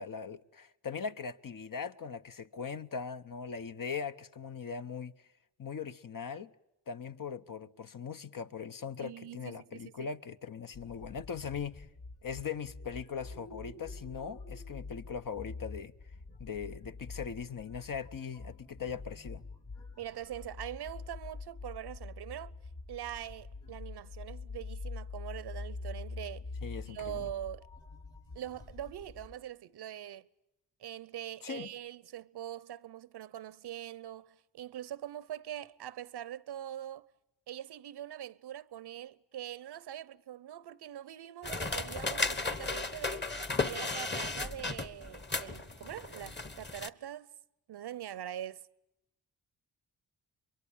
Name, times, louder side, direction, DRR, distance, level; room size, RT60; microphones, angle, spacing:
voice 1, 0.0-5.1 5.6-6.5 6.9-11.9 12.2-15.9 16.4-19.4 26.6-27.3 31.4-31.7, left 6 dB, 50° left, 1.1 m, -40 dB
voice 2, 9.0-10.1 20.0-22.5 22.9-26.5 26.9-27.7 28.3-30.3 30.8-37.1 37.5-43.3 43.6-47.3 47.7-48.7, right 11 dB, 70° right, 0.9 m, -43 dB
sound 1, 10.7-29.3, left 3 dB, 80° left, 7.0 m, -45 dB
sound 2, 41.4-46.9, left 3 dB, 25° left, 1.4 m, -35 dB
24.5 x 22.5 x 8.9 m
supercardioid pair, 45°, 42 cm